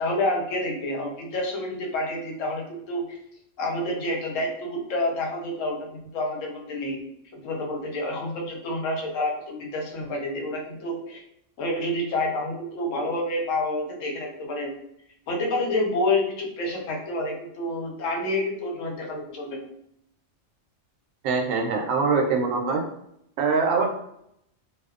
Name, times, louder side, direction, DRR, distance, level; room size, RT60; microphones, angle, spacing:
voice 1, 0.0-3.2 3.6-7.0 7.3-11.2 11.6-14.7 15.3-19.6, left 1 dB, 80° left, 0 dB, 1.0 m, -28 dB
voice 2, 21.2-22.8 23.4-23.9, right 4 dB, 85° right, 1 dB, 1.0 m, -23 dB
2.6 x 2.0 x 2.3 m, 0.75 s
omnidirectional pair, 1.3 m